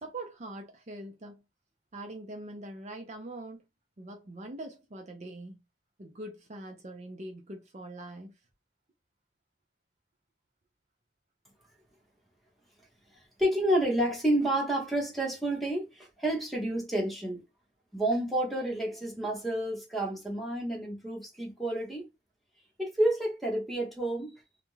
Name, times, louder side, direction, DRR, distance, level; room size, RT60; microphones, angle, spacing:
voice 1, 0.0-1.4 1.9-3.6 4.0-5.6 6.0-8.3, right 1 dB, 40° right, 0.5 m, -43 dB
voice 2, 13.4-17.4 17.9-22.1 22.8-24.4, right 1 dB, ahead, 0.9 m, -29 dB
2.4 x 2.2 x 3.0 m
head